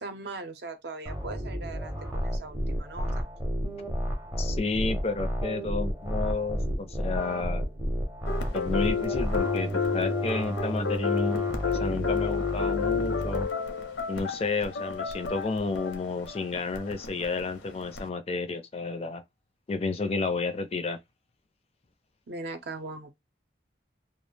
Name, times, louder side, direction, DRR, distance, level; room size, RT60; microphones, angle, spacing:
voice 1, 0.0-3.3 22.3-23.1, right 3 dB, 60° right, 0.5 m, -39 dB
sound 1, 1.0-13.4, equal, 15° right, 0.6 m, -32 dB
voice 2, 4.4-7.7 8.5-13.5 14.1-19.2 19.7-21.0, left 3 dB, 30° left, 0.3 m, -31 dB
sound 2, 8.3-18.1, left 6 dB, 80° left, 0.6 m, -31 dB
2.3 x 2.0 x 3.1 m
head